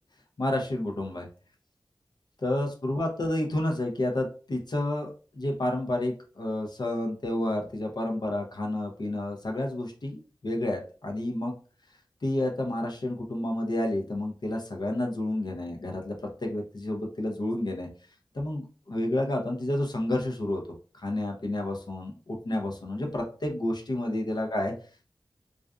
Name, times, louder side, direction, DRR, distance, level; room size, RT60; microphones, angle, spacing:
voice 1, 0.4-1.3 2.4-11.5 12.2-16.2 16.4-17.9 18.3-20.6 20.9-24.7, left 1 dB, 60° left, 1 dB, 0.6 m, -30 dB
2.4 x 2.4 x 2.2 m, 0.38 s
cardioid pair, 40°, 8 cm